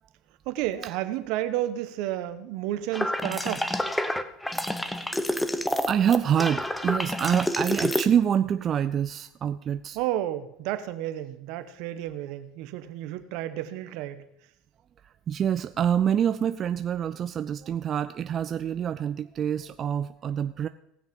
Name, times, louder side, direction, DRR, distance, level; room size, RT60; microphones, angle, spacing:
voice 1, 0.5-3.7 9.9-14.2, right 13 dB, 70° right, 11 dB, 1.0 m, -31 dB
sound 1, 2.9-8.0, left 1 dB, 5° left, 0.8 m, -28 dB
voice 2, 4.8-5.5 5.8-10.0 15.0-20.7, right 9 dB, 40° right, 11 dB, 0.4 m, -26 dB
18.0 x 6.3 x 5.3 m, 0.80 s
supercardioid pair, 105°, 0 cm